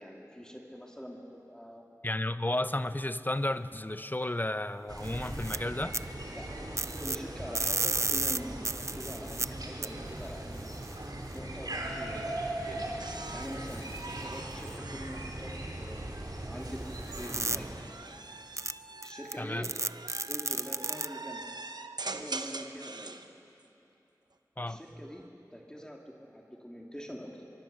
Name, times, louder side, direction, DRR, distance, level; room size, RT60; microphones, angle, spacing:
voice 1, 0.0-1.8 6.3-6.5 7.0-10.7 11.3-12.8 13.3-17.7 19.0-19.7 20.3-21.4 22.0-23.2 24.6-25.2 25.5-27.5, equal, 10° left, 0 dB, 2.4 m, -44 dB
voice 2, 2.0-6.0 19.4-19.7 24.6-24.8, left 1 dB, 25° left, 13 dB, 0.7 m, -33 dB
sound 1, 4.9-17.8, right 1 dB, 70° right, 3.1 m, -39 dB
sound 2, 5.1-5.6 5.9-6.0 6.8-7.2 7.5-9.5 9.8-9.9 10.8-10.9 13.7-14.0 14.7-14.8 17.1-17.6 18.6-18.7 19.0-19.3 19.6-21.1, right 2 dB, 45° right, 0.4 m, -32 dB
sound 3, 13.0-16.3 17.1-23.3 24.7-25.3, right 3 dB, 85° right, 0.9 m, -44 dB
24.5 x 23.5 x 6.7 m, 2.9 s
wide cardioid pair, 50°, 7 cm